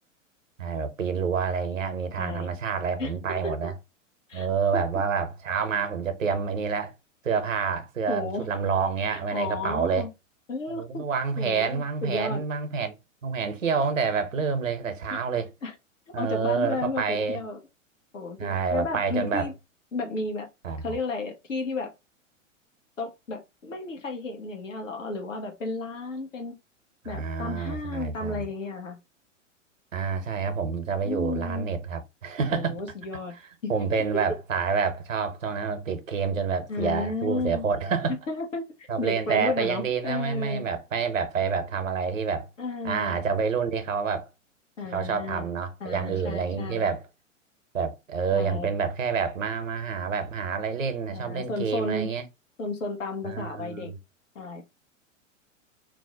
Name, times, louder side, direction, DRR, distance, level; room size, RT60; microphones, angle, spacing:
voice 1, 0.6-3.7 4.3-6.9 7.2-10.1 10.8-12.9 13.2-15.5 16.1-17.4 18.4-19.5 20.6-21.0 27.0-28.5 29.9-32.8 33.7-38.2 38.9-42.5 42.8-44.3 44.9-47.0 47.7-52.2 53.3-54.0, right 5 dB, 80° right, 0.7 m, -28 dB
voice 2, 2.2-2.5 3.0-3.1 3.4-3.5 4.3-4.5 4.7-4.8 8.1-8.4 9.1-10.1 10.5-11.0 11.4-12.4 15.1-15.2 15.6-15.7 16.2-17.6 18.1-19.5 19.9-20.5 20.8-21.9 23.0-26.5 27.0-29.0 31.1-31.7 32.5-33.3 33.6-33.7 36.7-37.6 38.3-40.6 42.6-43.2 44.8-45.5 45.8-46.9 48.3-48.7 51.1-52.1 52.6-53.9 54.3-54.7, left 3 dB, 75° left, 0.9 m, -33 dB
2.5 x 2.1 x 3.8 m
figure-of-eight pair, 100°, 38 cm